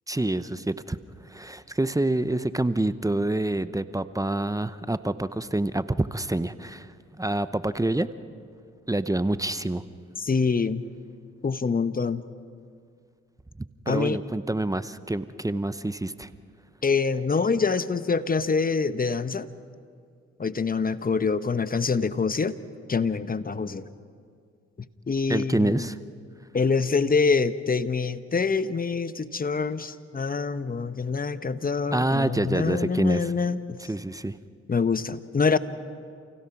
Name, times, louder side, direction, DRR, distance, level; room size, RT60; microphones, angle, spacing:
voice 1, 0.1-8.1 8.9-9.8 13.6-16.3 25.3-26.0 31.9-33.3 33.9-34.4, right 2 dB, 10° right, 14 dB, 0.8 m, -27 dB
voice 2, 10.2-10.8 11.4-12.2 13.9-14.2 16.8-19.5 20.4-22.5 22.9-23.9 25.1-25.9 26.5-33.8 34.7-35.6, left 4 dB, 30° left, 13 dB, 1.0 m, -25 dB
28.5 x 16.5 x 6.0 m, 2.2 s
supercardioid pair, 50°, 29 cm